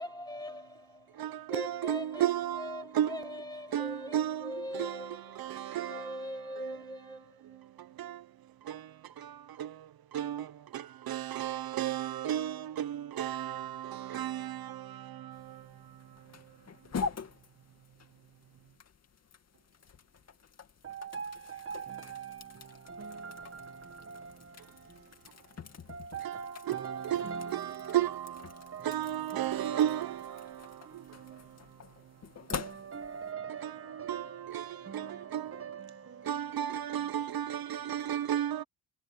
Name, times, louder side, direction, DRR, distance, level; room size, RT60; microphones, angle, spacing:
voice 1, 0.0-1.1 1.5-2.3 2.6-4.2 4.4-5.2 5.8-7.4, left 1 dB, 10° left, 1.8 m, -41 dB
voice 2, 1.1-17.0 24.6-24.7 26.2-32.2 33.6-35.6 36.2-38.6, right 11 dB, 60° right, 1.0 m, -35 dB
sound 1, 15.3-33.3, left 5 dB, 40° left, 2.3 m, -45 dB
voice 3, 20.8-28.2 28.5-37.5, right 6 dB, 35° right, 1.4 m, -44 dB
cardioid pair, 125°, 41 cm